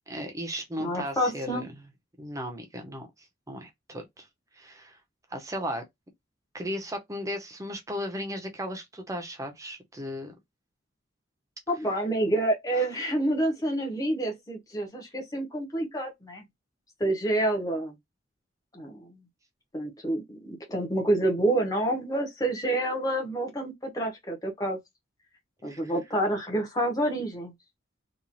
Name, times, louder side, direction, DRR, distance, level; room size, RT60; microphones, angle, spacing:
voice 1, 0.1-1.7 2.2-3.1 3.5-4.3 4.5-5.0 5.3-5.8 6.5-10.3 25.7-25.9, equal, 15° right, 0.6 m, -36 dB
voice 2, 0.8-1.6 11.7-16.4 17.0-17.9 18.7-19.2 19.7-24.8 25.6-27.5, right 1 dB, 20° left, 0.8 m, -28 dB
3.0 x 2.3 x 2.5 m
head